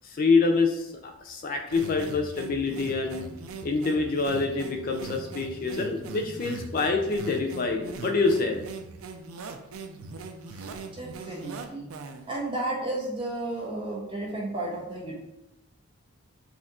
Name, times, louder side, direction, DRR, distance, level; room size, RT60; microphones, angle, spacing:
voice 1, 0.0-3.2 3.6-8.6, left 4 dB, 40° left, 4 dB, 0.3 m, -26 dB
sound 1, 1.7-12.3, right 3 dB, 80° right, 0.5 m, -40 dB
voice 2, 10.5-11.8 12.3-15.1, right 2 dB, 25° right, -4 dB, 1.1 m, -33 dB
4.2 x 2.5 x 4.1 m, 0.87 s
head